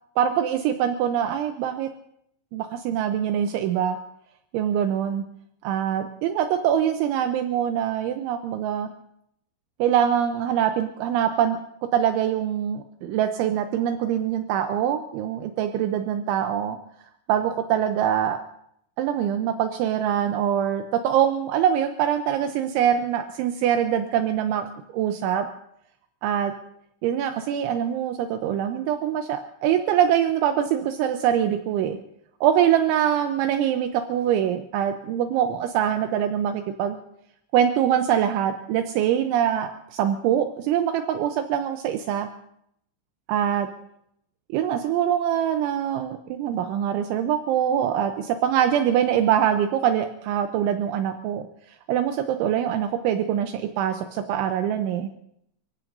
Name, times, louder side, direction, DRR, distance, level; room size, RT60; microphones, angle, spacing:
voice 1, 0.2-1.9 2.5-4.0 4.5-5.2 5.6-8.9 9.8-11.6 11.9-16.8 17.3-18.4 19.0-25.5 26.2-26.5 27.0-32.0 32.4-37.0 37.5-42.3 43.3-43.7 44.5-51.5 51.9-55.1, right 9 dB, 80° right, 7 dB, 3.0 m, -24 dB
29.0 x 16.0 x 2.6 m, 0.74 s
omnidirectional pair, 5.8 m